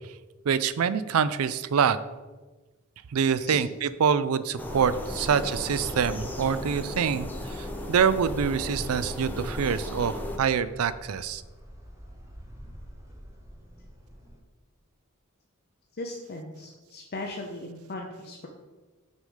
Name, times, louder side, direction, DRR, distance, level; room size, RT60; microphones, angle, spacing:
voice 1, 0.5-2.0 3.1-7.3 7.9-11.4, right 7 dB, 80° right, 15 dB, 0.4 m, -25 dB
sound 1, 4.6-10.4, left 1 dB, 10° left, 0.8 m, -36 dB
sound 2, 5.4-14.4, equal, 15° right, 1.2 m, -45 dB
voice 2, 16.0-18.5, left 2 dB, 50° left, 1 dB, 0.7 m, -38 dB
6.3 x 5.0 x 5.5 m, 1.2 s
head